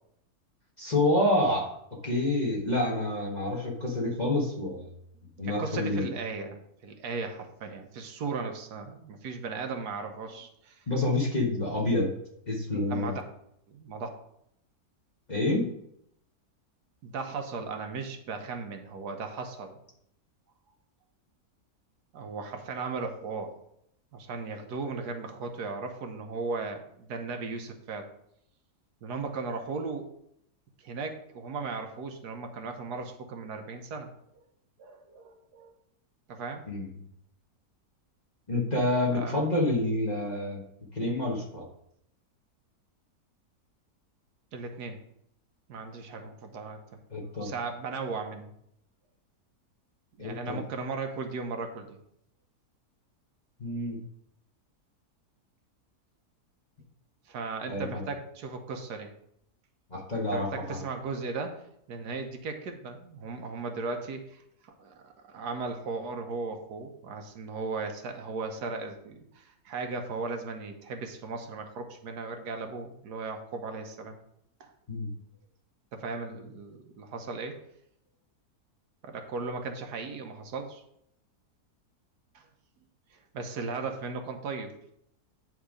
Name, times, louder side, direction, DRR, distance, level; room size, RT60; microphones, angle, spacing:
voice 1, 0.8-1.7 2.0-4.9 5.4-6.1 10.9-12.1 12.5-13.1 15.3-15.7 36.7-36.9 38.5-40.6 40.9-41.6 47.1-47.5 50.2-50.6 53.6-54.0 57.7-58.0 59.9-60.8 74.9-75.1, left 1 dB, 30° left, -3 dB, 1.4 m, -28 dB
voice 2, 5.3-10.8 12.9-13.2 13.7-14.1 17.0-19.8 22.1-23.5 24.1-28.1 29.0-30.1 30.8-34.1 34.8-35.7 36.3-36.6 39.0-39.4 44.5-45.0 45.7-47.0 47.4-48.5 50.2-51.9 57.3-59.1 60.3-61.6 61.9-74.2 74.6-74.7 75.9-77.6 79.0-80.8 82.3-82.4 83.1-84.7, right 4 dB, 85° right, 5 dB, 1.5 m, -37 dB
9.1 x 3.6 x 5.0 m, 0.74 s
omnidirectional pair, 1.7 m